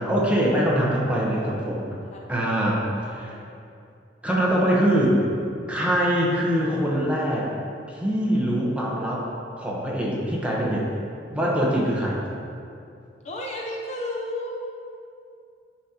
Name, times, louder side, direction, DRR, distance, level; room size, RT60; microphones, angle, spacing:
voice 1, 0.0-1.8 2.3-3.4 4.2-5.2 5.7-7.5 7.9-9.2 9.6-10.8 11.3-12.2, equal, 5° right, -5 dB, 1.0 m, -23 dB
voice 2, 2.0-2.6 3.1-3.5 13.2-14.5, left 1 dB, 40° left, -2 dB, 0.7 m, -34 dB
9.8 x 5.1 x 2.9 m, 2.5 s
head